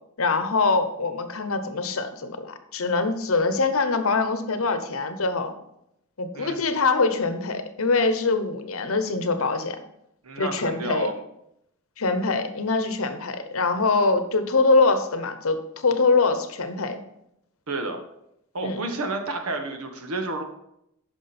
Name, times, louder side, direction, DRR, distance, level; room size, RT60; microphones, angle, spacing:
voice 1, 0.2-5.5 6.2-9.8 10.4-11.1 12.0-17.0 18.6-18.8, left 3 dB, 75° left, 9 dB, 0.9 m, -23 dB
voice 2, 10.2-11.1 17.7-18.0 18.5-20.4, right 2 dB, 85° right, 5 dB, 1.3 m, -30 dB
9.4 x 6.0 x 4.3 m, 0.80 s
head